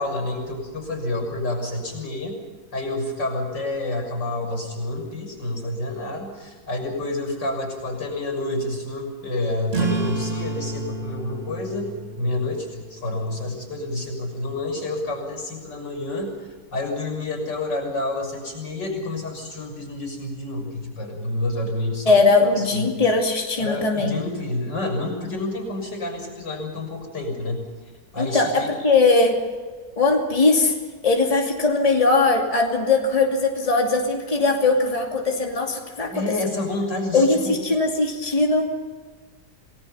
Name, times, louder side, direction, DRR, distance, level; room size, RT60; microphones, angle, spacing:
voice 1, 0.0-2.4 2.7-16.4 16.7-23.0 23.6-27.7 28.1-28.7 36.1-37.6, left 2 dB, 85° left, 3 dB, 7.2 m, -29 dB
sound 1, 9.7-14.8, right 3 dB, 35° right, 2.6 m, -31 dB
voice 2, 22.1-24.2 28.2-29.4 30.0-30.7 31.0-36.2 37.1-38.7, left 3 dB, 20° left, 0 dB, 2.7 m, -20 dB
28.0 x 19.5 x 5.7 m, 1.4 s
omnidirectional pair, 1.9 m